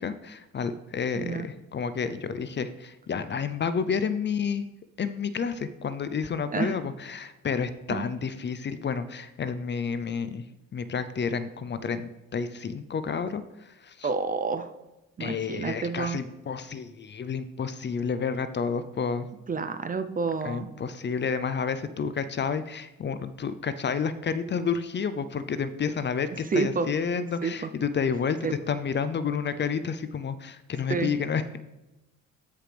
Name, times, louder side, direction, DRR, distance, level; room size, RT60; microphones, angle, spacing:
voice 1, 0.0-4.7 5.0-10.4 10.7-14.1 15.2-19.3 20.4-28.4 28.7-31.6, left 6 dB, 35° left, 12 dB, 0.5 m, -30 dB
voice 2, 1.2-1.5 6.5-6.8 7.9-8.1 14.0-14.7 15.2-16.2 19.5-20.7 26.5-26.9 27.4-27.7 28.4-28.5 30.9-31.1, right 4 dB, 30° right, 10 dB, 0.6 m, -29 dB
13.5 x 5.0 x 3.4 m, 1.0 s
cardioid pair, 90°, 30 cm